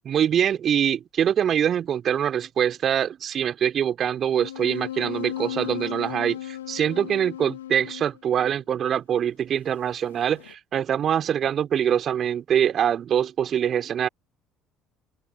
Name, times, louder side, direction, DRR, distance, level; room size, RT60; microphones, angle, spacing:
voice 1, 0.0-14.1, right 9 dB, 45° right, 3.1 m, -24 dB
sound 1, 4.4-8.2 9.8-10.5, left 12 dB, 75° left, 2.0 m, -36 dB
figure-of-eight pair, 55°, 0 cm